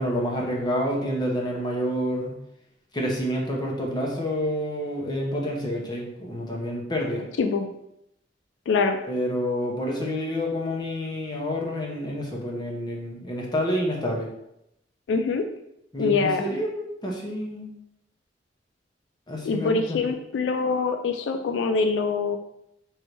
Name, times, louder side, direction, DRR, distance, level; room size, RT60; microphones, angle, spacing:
voice 1, 0.0-2.4 2.9-7.2 9.1-14.3 15.9-17.7 19.3-20.0, equal, 25° left, -2 dB, 0.8 m, -28 dB
voice 2, 7.4-7.7 8.7-9.0 15.1-15.4 16.0-16.4 19.4-22.4, left 4 dB, 85° left, 6 dB, 0.3 m, -24 dB
3.2 x 2.6 x 4.4 m, 0.81 s
head